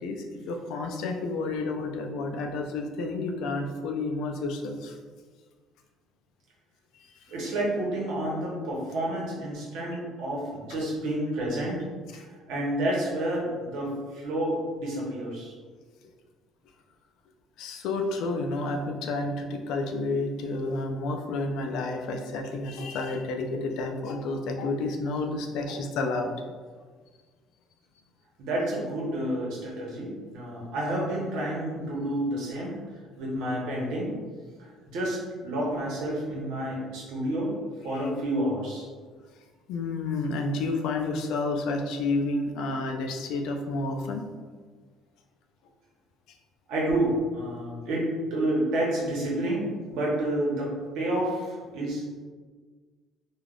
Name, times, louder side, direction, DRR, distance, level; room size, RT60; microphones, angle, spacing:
voice 1, 0.0-4.9 10.7-10.8 12.1-12.2 17.6-26.3 37.9-38.1 39.7-44.2, left 3 dB, 70° left, 3 dB, 0.3 m, -30 dB
voice 2, 7.3-11.8 12.1-15.5 28.4-32.7 33.2-34.1 34.6-37.5 37.8-38.8 46.7-49.6 49.9-52.0, right 1 dB, 75° right, -4 dB, 0.9 m, -29 dB
3.3 x 2.3 x 2.4 m, 1.5 s
cardioid pair, 160°, 0 cm